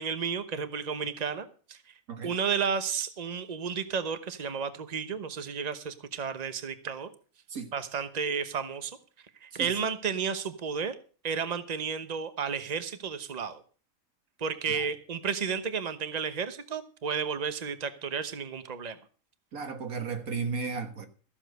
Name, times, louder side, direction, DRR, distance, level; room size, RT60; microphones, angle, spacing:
voice 1, 0.0-1.8 2.2-7.1 7.7-9.0 9.4-11.0 11.2-13.6 14.4-19.0, right 6 dB, 30° right, 1.0 m, -32 dB
voice 2, 19.5-21.1, right 5 dB, 80° right, 2.1 m, -34 dB
14.5 x 7.3 x 6.6 m
omnidirectional pair, 1.5 m